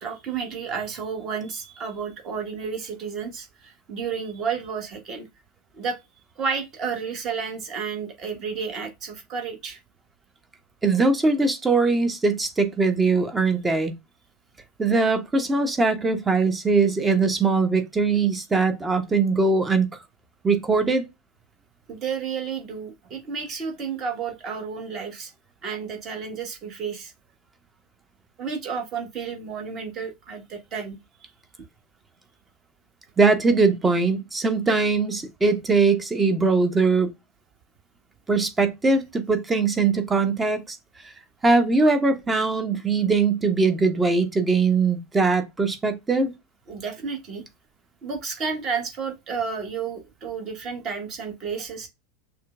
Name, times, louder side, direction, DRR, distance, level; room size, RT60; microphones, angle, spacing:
voice 1, 0.0-5.3 5.7-6.0 6.4-9.8 21.9-25.3 25.6-27.1 28.4-31.0 46.7-47.4 48.0-51.9, right 6 dB, 35° right, 1.3 m, -31 dB
voice 2, 10.8-13.9 14.8-19.9 20.4-21.1 33.2-37.1 38.3-40.8 41.4-46.3, right 4 dB, 15° right, 0.7 m, -21 dB
6.4 x 2.2 x 2.3 m
figure-of-eight pair, 85°, 0 cm